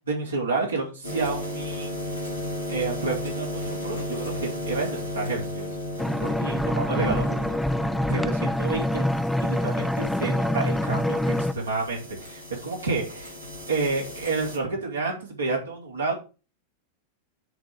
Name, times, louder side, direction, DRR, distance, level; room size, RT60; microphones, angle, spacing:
voice 1, 0.0-1.9 2.7-5.7 6.2-7.6 8.1-9.1 9.4-13.4 13.7-16.1, right 3 dB, 75° right, -2 dB, 2.5 m, -30 dB
sound 1, 1.0-14.6, left 1 dB, 90° right, 3.5 m, -35 dB
sound 2, 6.0-11.5, left 1 dB, ahead, 0.5 m, -25 dB
7.8 x 3.8 x 6.7 m, 0.33 s
figure-of-eight pair, 90°, 0 cm